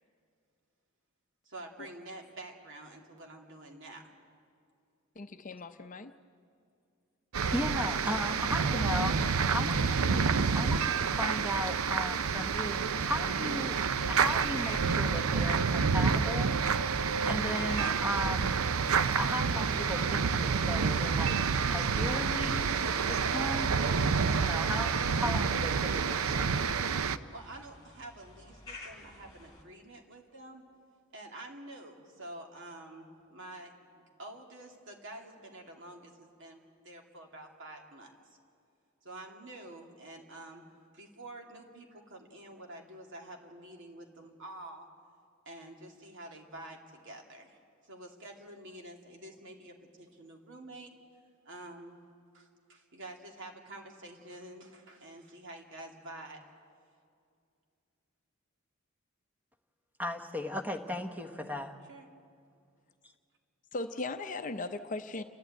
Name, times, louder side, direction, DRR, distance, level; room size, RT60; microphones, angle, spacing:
voice 1, 1.4-4.1 9.7-9.8 27.2-30.6 31.1-33.7 34.2-38.1 39.0-40.6 40.9-44.9 45.5-50.9 51.4-52.0 52.3-56.4 61.9-62.1, right 1 dB, 60° right, 1 dB, 2.5 m, -48 dB
voice 2, 5.2-6.1 63.7-65.2, left 3 dB, 40° left, 8 dB, 0.6 m, -38 dB
sound 1, 7.3-27.2, right 5 dB, 85° right, 0.6 m, -28 dB
voice 3, 7.5-10.2 10.5-13.8 14.0-16.5 17.2-18.6 19.2-21.4 21.7-24.0 24.2-26.5 60.0-61.7, left 1 dB, 5° right, 5 dB, 1.2 m, -36 dB
sound 2, 10.6-29.6, left 3 dB, 20° left, 2.8 m, -55 dB
29.5 x 11.5 x 9.1 m, 2.3 s
head